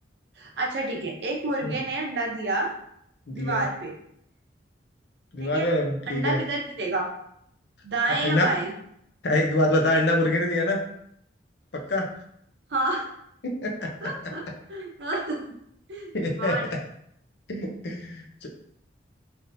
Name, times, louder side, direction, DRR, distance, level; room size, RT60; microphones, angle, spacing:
voice 1, 0.4-2.7 3.3-3.9 5.4-5.7 6.1-7.1 7.8-8.7 12.7-13.1 14.0-15.4 15.9-16.1 16.4-16.6, right 2 dB, 65° right, 0 dB, 0.7 m, -29 dB
voice 2, 3.3-3.6 5.3-6.4 8.2-8.5 9.2-10.8 11.9-12.0 13.4-13.9 16.1-16.5 17.5-18.5, left 1 dB, 60° left, 1 dB, 0.6 m, -25 dB
3.4 x 2.7 x 2.6 m, 0.72 s
head